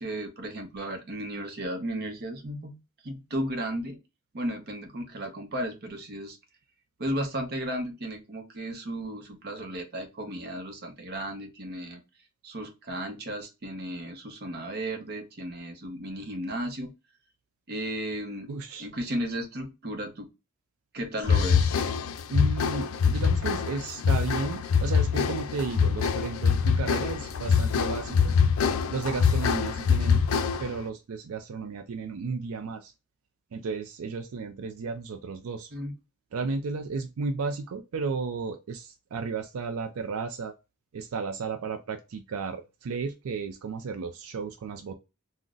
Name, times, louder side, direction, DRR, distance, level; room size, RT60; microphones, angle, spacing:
voice 1, 0.0-4.0 4.3-6.4 7.0-12.0 12.4-16.9 17.7-18.5 18.8-20.3 20.9-21.7 35.7-35.9, right 1 dB, 50° right, 4 dB, 0.8 m, -34 dB
voice 2, 18.5-18.9 22.3-28.4 28.9-30.2 30.6-32.9 33.5-35.7 36.3-40.5 40.9-44.9, right 4 dB, 80° right, 5 dB, 0.4 m, -33 dB
sound 1, 21.2-30.8, left 6 dB, 70° left, 0.4 m, -24 dB
3.7 x 2.1 x 2.4 m, 0.26 s
head